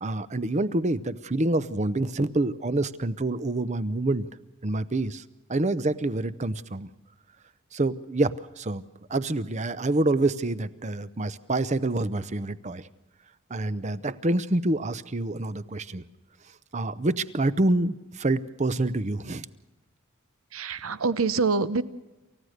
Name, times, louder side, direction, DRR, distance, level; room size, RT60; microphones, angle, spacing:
voice 1, 0.0-4.3 4.6-5.2 5.5-6.9 7.7-8.8 9.1-12.9 13.5-16.0 16.7-19.5, right 2 dB, 35° right, 15 dB, 0.7 m, -27 dB
voice 2, 20.5-21.8, right 4 dB, 80° right, 14 dB, 0.9 m, -25 dB
28.5 x 15.0 x 6.6 m, 1.1 s
head